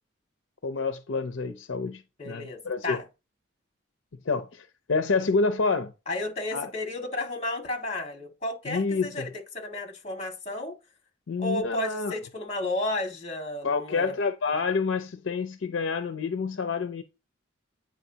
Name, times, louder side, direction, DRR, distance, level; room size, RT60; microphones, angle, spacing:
voice 1, 0.6-3.0 4.3-5.9 6.5-6.7 8.7-9.3 11.3-12.1 13.6-17.0, left 4 dB, 65° left, 0.5 m, -28 dB
voice 2, 2.2-3.0 6.1-9.3 9.5-10.7 11.4-14.1, left 2 dB, 35° left, 1.9 m, -32 dB
9.0 x 4.8 x 2.8 m
head